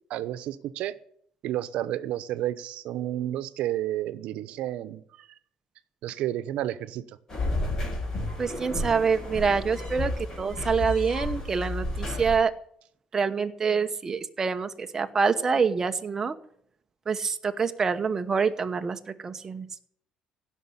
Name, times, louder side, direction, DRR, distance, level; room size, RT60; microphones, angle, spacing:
voice 1, 0.1-0.9 1.4-5.3 6.0-7.0, right 13 dB, 70° right, 14 dB, 1.0 m, -31 dB
sound 1, 7.3-12.4, left 2 dB, 30° left, 5.2 m, -31 dB
voice 2, 8.4-12.5 13.1-16.3 17.1-19.7, right 5 dB, 25° right, 8 dB, 1.0 m, -26 dB
16.5 x 6.4 x 9.7 m, 0.66 s
cardioid pair, 140°, 2 cm